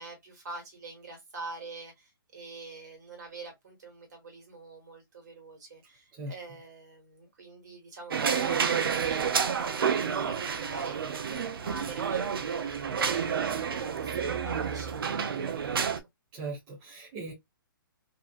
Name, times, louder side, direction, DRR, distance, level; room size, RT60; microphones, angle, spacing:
voice 1, 0.0-11.3 11.6-13.7 14.0-16.1, right 3 dB, 50° right, 1.5 m, -46 dB
sound 1, 8.1-16.0, right 7 dB, 80° right, 0.5 m, -29 dB
voice 2, 16.3-17.3, right 3 dB, 15° right, 0.5 m, -39 dB
2.7 x 2.4 x 2.3 m
hypercardioid pair, 175°, 12 cm